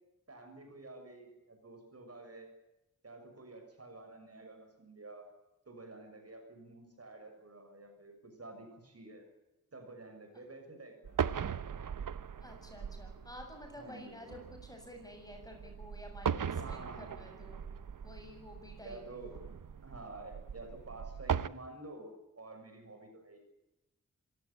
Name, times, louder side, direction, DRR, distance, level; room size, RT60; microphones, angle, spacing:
voice 1, 0.3-2.5 3.0-5.3 5.7-9.3 9.7-11.5 13.7-14.3 16.6-17.4 18.8-19.4 19.8-23.4, right 2 dB, 50° right, 5 dB, 6.8 m, -50 dB
sound 1, 11.0-21.5, right 7 dB, 75° right, 1.0 m, -39 dB
voice 2, 12.4-17.6 18.0-19.0, left 1 dB, 10° left, 4 dB, 7.6 m, -51 dB
26.5 x 17.0 x 8.6 m, 0.93 s
wide cardioid pair, 105°, 32 cm